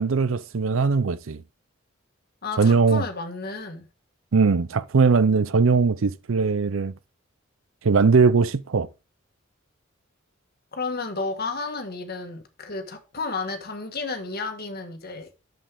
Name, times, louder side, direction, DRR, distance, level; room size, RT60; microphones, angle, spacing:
voice 1, 0.0-1.4 2.6-3.0 4.3-6.9 7.8-8.9, right 4 dB, 80° right, 0.6 m, -20 dB
voice 2, 2.4-3.9 10.7-15.3, left 3 dB, 50° left, 1.8 m, -32 dB
10.0 x 7.6 x 3.6 m
head